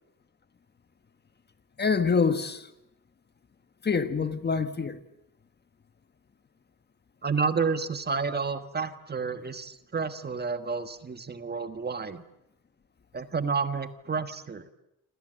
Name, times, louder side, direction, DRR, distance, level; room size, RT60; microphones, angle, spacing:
voice 1, 1.8-2.7 3.8-5.0, left 5 dB, 30° left, 1.5 m, -26 dB
voice 2, 7.2-12.2 13.1-14.7, right 5 dB, 30° right, 1.4 m, -30 dB
28.0 x 26.5 x 7.9 m
cardioid pair, 145°, 34 cm